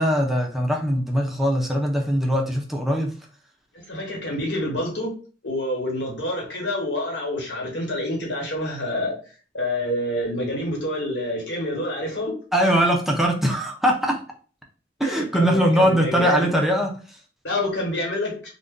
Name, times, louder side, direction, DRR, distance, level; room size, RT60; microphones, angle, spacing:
voice 1, 0.0-3.1 12.5-14.2 15.0-16.9, equal, ahead, 1 dB, 0.4 m, -21 dB
voice 2, 3.9-5.1 5.4-12.7 15.0-16.5 17.4-18.3, left 1 dB, 70° left, -2 dB, 1.2 m, -27 dB
2.5 x 2.2 x 3.6 m, 0.39 s
head